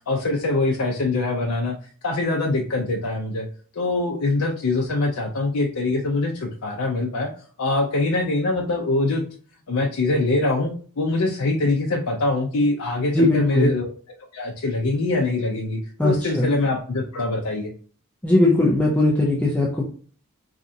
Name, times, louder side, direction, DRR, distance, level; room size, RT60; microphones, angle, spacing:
voice 1, 0.1-1.7 2.0-3.5 3.8-7.3 7.6-9.2 9.7-13.9 14.3-17.7, left 2 dB, 75° left, 0 dB, 0.5 m, -23 dB
voice 2, 13.1-13.7 16.0-16.5 18.2-19.8, left 1 dB, 5° left, -4 dB, 0.5 m, -19 dB
4.1 x 2.4 x 2.6 m, 0.43 s
head